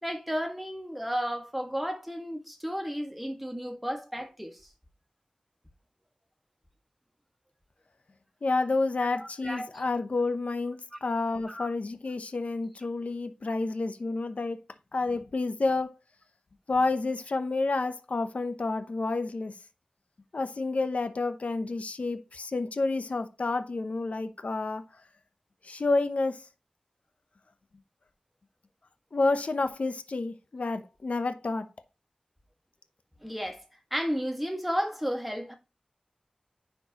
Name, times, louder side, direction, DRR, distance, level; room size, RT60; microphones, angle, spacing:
voice 1, 0.0-4.6 9.2-9.8 10.9-11.0 11.5-11.7 33.2-35.5, equal, 5° right, 1.6 m, -33 dB
voice 2, 8.4-14.6 14.9-15.9 16.7-19.6 20.3-24.8 25.6-26.5 29.1-31.7, left 3 dB, 70° left, 0.8 m, -29 dB
10.0 x 4.5 x 2.9 m
wide cardioid pair, 70°, 2 cm